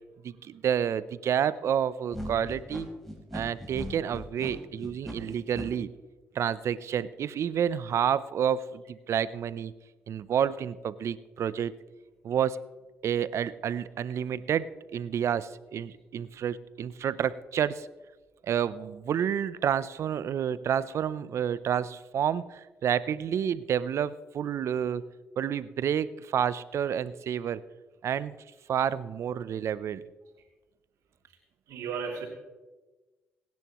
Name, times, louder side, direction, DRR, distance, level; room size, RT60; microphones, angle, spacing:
voice 1, 0.2-2.9 3.3-5.9 6.3-9.7 10.1-11.7 12.2-12.6 13.0-17.9 18.4-25.0 25.4-27.6 28.0-28.3 28.7-30.0, right 8 dB, 65° right, 16 dB, 0.6 m, -29 dB
sound 1, 2.1-5.7, equal, 5° left, 4.2 m, -39 dB
voice 2, 31.7-32.3, right 6 dB, 80° right, 0 dB, 3.1 m, -37 dB
24.0 x 10.5 x 3.1 m, 1.2 s
supercardioid pair, 55°, 5 cm